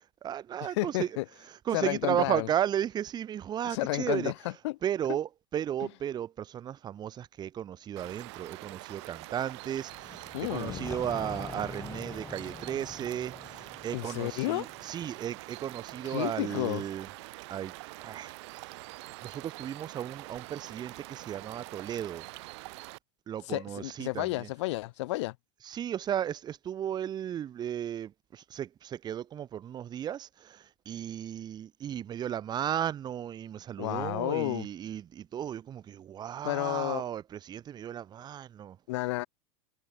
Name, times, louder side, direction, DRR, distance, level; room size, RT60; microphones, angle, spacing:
voice 1, 0.2-1.2 1.5-4.3 4.8-17.1 17.5-17.7 18.0-18.3 19.2-22.2 23.3-24.5 25.6-30.6 30.9-38.8, right 10 dB, 25° right, 0.6 m, -34 dB
voice 2, 0.7-1.2 1.7-2.5 3.7-4.8 5.8-5.9 10.3-10.8 13.9-14.7 16.0-16.8 23.5-25.4 33.8-34.7 36.4-37.0 38.9-39.3, left 20 dB, 65° left, 0.4 m, -31 dB
sound 1, 8.0-23.0, right 24 dB, 60° right, 2.2 m, -45 dB
sound 2, 9.9-15.6, left 4 dB, 15° left, 2.3 m, -44 dB
hypercardioid pair, 95°, 16 cm